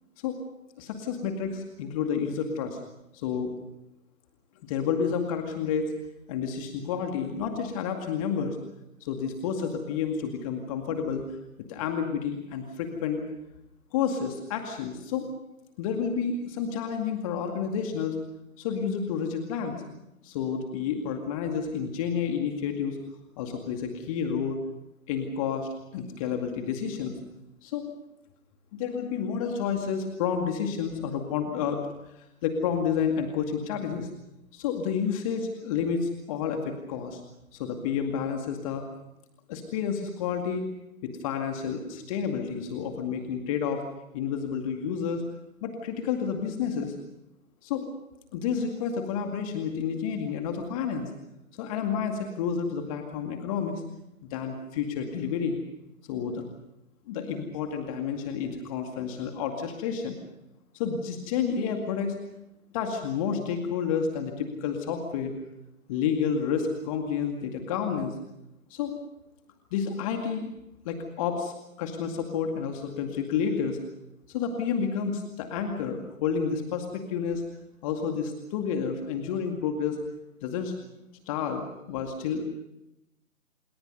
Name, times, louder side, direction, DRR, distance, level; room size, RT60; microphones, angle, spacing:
voice 1, 0.8-2.8 3.1-3.5 4.7-5.9 6.3-8.6 9.0-11.2 11.7-13.3 13.9-15.3 15.8-18.2 18.6-19.8 20.2-23.0 23.4-24.6 25.1-27.2 27.6-27.9 28.7-31.8 32.1-34.1 34.5-37.2 37.5-38.8 39.5-40.6 41.0-43.8 44.1-45.2 45.6-46.9 47.6-47.8 48.3-51.1 51.5-53.8 54.2-55.6 56.1-56.5 57.1-60.2 60.7-62.2 62.7-65.3 65.9-68.2 68.7-69.0 69.7-70.5 70.9-71.5 71.8-73.8 74.3-77.4 77.8-80.0 80.4-80.7 81.3-82.4, left 7 dB, 25° left, 4 dB, 2.2 m, -30 dB
28.0 x 22.0 x 5.4 m, 0.89 s
figure-of-eight pair, 135°, 44 cm